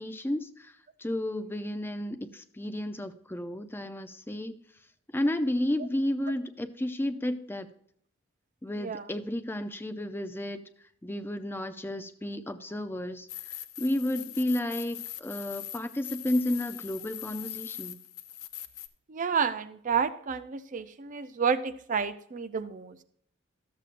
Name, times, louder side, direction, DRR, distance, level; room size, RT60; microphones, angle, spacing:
voice 1, 0.0-4.5 5.1-7.7 8.6-10.6 11.0-18.0, left 1 dB, 10° left, 9 dB, 0.5 m, -32 dB
sound 1, 13.3-18.9, left 12 dB, 85° left, 0.6 m, -41 dB
voice 2, 19.1-22.9, right 6 dB, 40° right, 11 dB, 0.5 m, -30 dB
13.0 x 7.6 x 2.5 m, 0.65 s
head